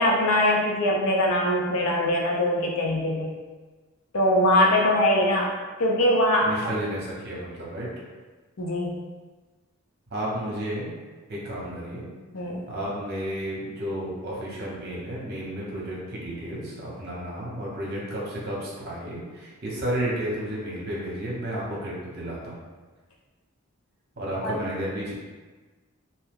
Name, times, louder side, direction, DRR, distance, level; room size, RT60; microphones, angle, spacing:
voice 1, 0.0-3.3 4.1-5.5 5.8-6.7 8.6-8.9 12.3-12.7 24.4-24.6, left 1 dB, 80° left, -1 dB, 0.6 m, -22 dB
voice 2, 6.4-7.9 10.1-10.9 11.3-12.1 12.7-22.5 24.2-25.1, right 1 dB, 50° right, -5 dB, 0.9 m, -32 dB
2.8 x 2.2 x 3.4 m, 1.3 s
head